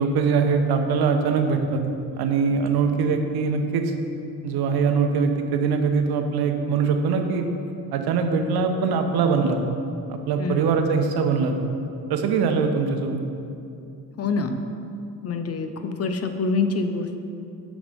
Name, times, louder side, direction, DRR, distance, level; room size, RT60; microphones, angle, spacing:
voice 1, 0.0-1.8 2.2-3.9 4.4-7.4 7.9-9.6 10.1-11.5 12.1-13.2, right 5 dB, 50° right, 5 dB, 1.0 m, -22 dB
voice 2, 10.4-10.8 14.2-14.6 15.2-17.2, left 4 dB, 30° left, 7 dB, 0.7 m, -26 dB
6.7 x 6.2 x 5.3 m, 2.7 s
hypercardioid pair, 55°, 48 cm